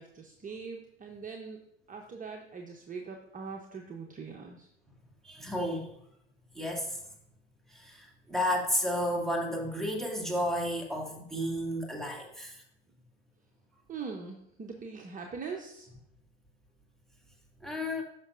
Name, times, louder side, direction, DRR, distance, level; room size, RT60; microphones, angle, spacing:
voice 1, 0.0-4.7 13.9-15.9, right 5 dB, 25° right, 2 dB, 1.0 m, -42 dB
voice 2, 5.2-5.9 6.5-7.0 7.7-12.6 17.6-18.0, equal, ahead, -2 dB, 2.5 m, -32 dB
14.5 x 5.9 x 2.7 m, 0.78 s
hypercardioid pair, 75°, 30 cm